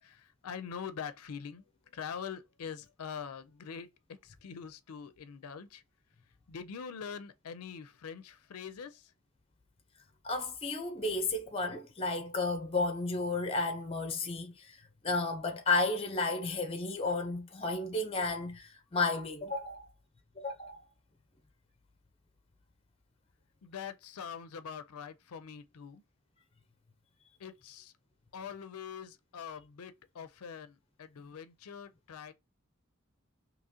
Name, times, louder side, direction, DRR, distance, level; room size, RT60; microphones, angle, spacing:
voice 1, 0.0-1.6 1.9-5.8 6.5-9.1 23.6-26.0 27.4-27.9 28.3-32.3, left 7 dB, 90° left, 0.4 m, -44 dB
voice 2, 10.2-19.9 20.4-20.8, left 3 dB, 25° left, 0.6 m, -33 dB
3.7 x 2.9 x 2.7 m
head